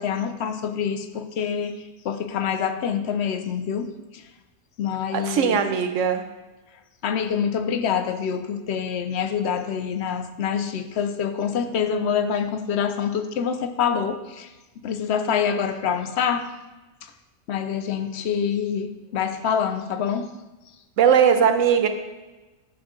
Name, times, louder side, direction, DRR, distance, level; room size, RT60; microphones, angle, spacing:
voice 1, 0.0-4.2 4.8-5.6 7.0-14.5 14.8-16.5 17.0-17.1 17.5-20.3, left 7 dB, 65° left, 9 dB, 0.9 m, -26 dB
voice 2, 5.1-6.2 21.0-21.9, right 7 dB, 90° right, 7 dB, 1.1 m, -19 dB
9.5 x 6.3 x 3.7 m, 1.1 s
omnidirectional pair, 1.3 m